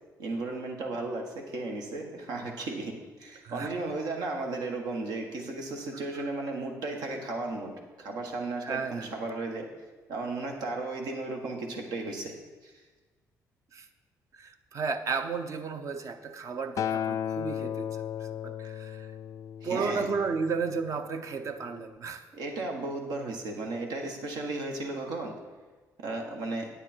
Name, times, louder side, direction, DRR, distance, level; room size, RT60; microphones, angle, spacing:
voice 1, 0.2-7.7 8.0-9.7 10.1-12.3 12.6-12.7 19.6-20.1 22.3-25.3 26.0-26.7, right 2 dB, 85° right, 2 dB, 1.6 m, -35 dB
voice 2, 8.6-9.1 13.7-13.9 14.3-19.1 19.6-22.2, right 5 dB, 50° right, 8 dB, 0.7 m, -33 dB
Acoustic guitar, 16.8-21.1 21.9-22.0, left 9 dB, 55° left, 0.3 m, -35 dB
9.1 x 8.9 x 4.4 m, 1.3 s
cardioid pair, 95°, 7 cm